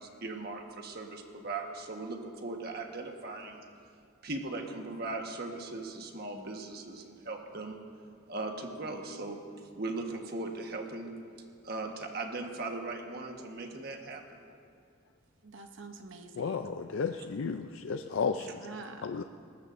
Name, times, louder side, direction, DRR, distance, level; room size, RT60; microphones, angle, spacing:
voice 1, 0.0-3.6 4.2-7.8 8.3-9.4 9.8-11.1 11.6-14.4, right 2 dB, 50° right, 3 dB, 1.4 m, -38 dB
voice 2, 15.4-16.7 18.4-19.2, right 3 dB, 70° right, 6 dB, 0.9 m, -47 dB
voice 3, 16.4-18.5 19.0-19.2, left 5 dB, 85° left, 7 dB, 0.5 m, -33 dB
20.0 x 19.0 x 2.6 m, 2.3 s
head